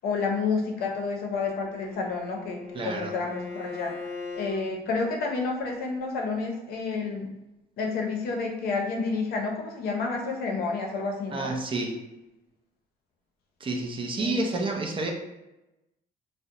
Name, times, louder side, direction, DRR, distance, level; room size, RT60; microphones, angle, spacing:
voice 1, 0.0-3.9 4.3-7.3 7.8-11.5 14.2-14.6, left 4 dB, 65° left, 2 dB, 0.6 m, -30 dB
Bowed string instrument, 1.4-4.6, left 4 dB, 10° left, 0.7 m, -40 dB
voice 2, 2.7-3.1 11.3-12.0 13.6-15.1, right 2 dB, 30° right, 1 dB, 0.4 m, -29 dB
2.4 x 2.0 x 2.8 m, 0.97 s
cardioid pair, 110°, 17 cm